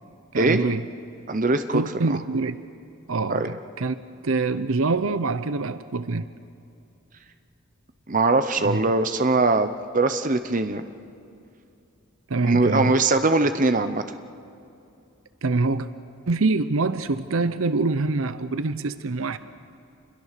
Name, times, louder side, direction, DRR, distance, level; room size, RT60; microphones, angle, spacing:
voice 1, 0.3-0.9 1.7-2.6 3.1-4.0 4.2-6.3 8.6-8.8 12.3-12.9 15.4-15.9 16.3-19.4, right 3 dB, 70° right, 13 dB, 0.7 m, -25 dB
voice 2, 1.3-1.8 2.1-2.2 3.3-3.5 8.1-10.8 12.4-14.0, right 3 dB, 35° right, 9 dB, 0.8 m, -21 dB
27.0 x 22.0 x 6.7 m, 2.6 s
head